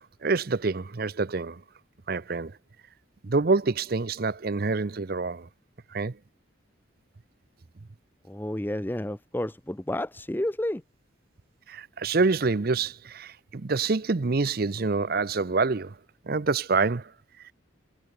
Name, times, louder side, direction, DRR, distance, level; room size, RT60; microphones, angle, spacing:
voice 1, 0.0-1.6 2.1-2.5 3.2-5.5 5.9-6.1 11.7-15.9 16.3-17.1, right 4 dB, 50° right, 0.6 m, -26 dB
voice 2, 8.2-10.8, left 1 dB, 10° left, 0.6 m, -31 dB
head